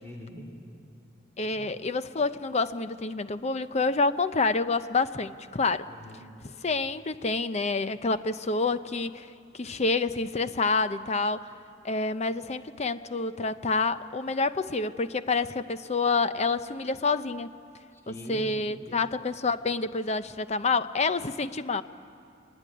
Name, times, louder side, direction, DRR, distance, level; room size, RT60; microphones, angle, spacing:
voice 1, 0.0-0.5 1.4-1.8 5.9-6.3 17.9-19.1, equal, 15° left, -2 dB, 3.0 m, -44 dB
voice 2, 1.4-5.9 6.6-9.3 9.5-11.5 11.8-17.5 18.1-21.8, left 3 dB, 35° left, 12 dB, 0.6 m, -28 dB
23.0 x 20.0 x 9.9 m, 2.6 s
head